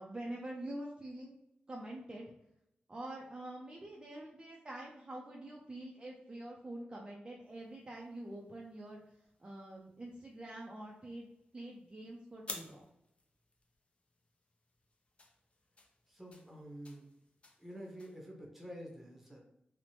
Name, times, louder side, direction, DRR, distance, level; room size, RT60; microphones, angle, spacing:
voice 1, 0.0-1.4 1.7-2.3 2.9-11.3 11.5-12.9, right 1 dB, 25° right, -2 dB, 0.4 m, -46 dB
sound 1, 7.4-18.2, left 2 dB, 35° left, 0.4 m, -55 dB
voice 2, 16.1-17.0 17.6-19.4, equal, 5° right, -2 dB, 0.7 m, -48 dB
3.0 x 2.0 x 2.8 m, 0.81 s
wide cardioid pair, 105°, 3 cm